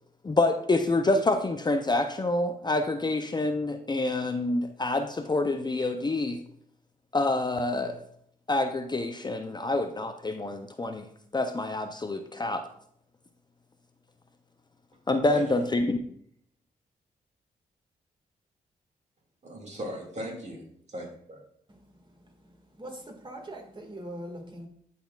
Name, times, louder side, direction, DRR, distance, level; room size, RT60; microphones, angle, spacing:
voice 1, 0.2-6.4 7.1-8.0 8.5-11.0 11.3-12.6 15.1-16.0, left 2 dB, 25° left, 7 dB, 0.6 m, -27 dB
voice 2, 19.4-21.4, equal, 45° right, 1 dB, 2.1 m, -39 dB
voice 3, 21.7-24.7, right 1 dB, 30° right, 2 dB, 1.9 m, -43 dB
11.5 x 4.2 x 2.4 m, 0.66 s
cardioid pair, 55°, 16 cm